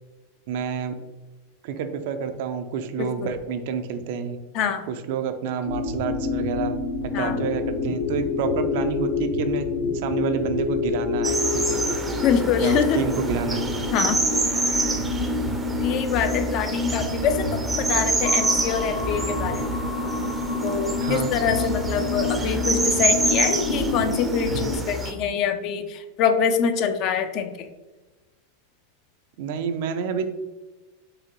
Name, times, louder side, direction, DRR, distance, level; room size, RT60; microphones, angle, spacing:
voice 1, 0.5-0.9 1.6-4.4 4.9-6.8 7.0-9.6 10.0-12.2 12.6-13.6 21.0-21.3 29.4-30.3, right 7 dB, 65° right, 8 dB, 0.4 m, -29 dB
voice 2, 3.0-3.3 4.5-4.9 7.1-7.4 12.2-13.0 13.9-14.3 15.8-19.7 20.6-27.7, left 7 dB, 50° left, 8 dB, 0.4 m, -25 dB
sound 1, 5.7-24.8, left 3 dB, 75° left, 1.1 m, -28 dB
sound 2, 11.2-25.1, right 2 dB, 10° right, 0.5 m, -27 dB
4.7 x 2.6 x 3.0 m, 1.2 s
supercardioid pair, 125°, 0 cm